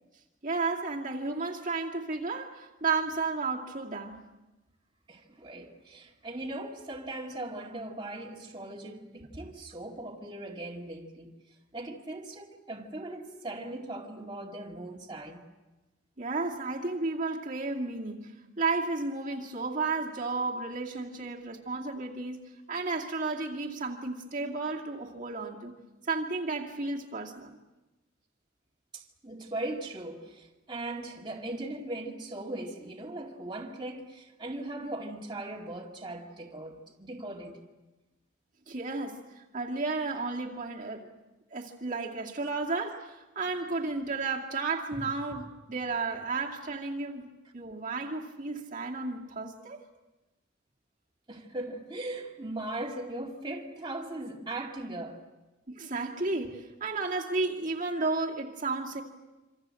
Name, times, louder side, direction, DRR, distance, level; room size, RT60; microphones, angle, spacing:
voice 1, 0.4-4.2 9.4-9.5 16.2-25.7 26.1-27.6 38.7-41.1 41.5-49.8 55.7-59.0, right 3 dB, 40° right, 2.3 m, -33 dB
voice 2, 5.1-11.3 11.7-15.4 21.2-21.3 28.9-37.6 44.9-45.0 51.3-55.2, right 2 dB, 25° right, 2.3 m, -39 dB
27.0 x 26.0 x 7.7 m
head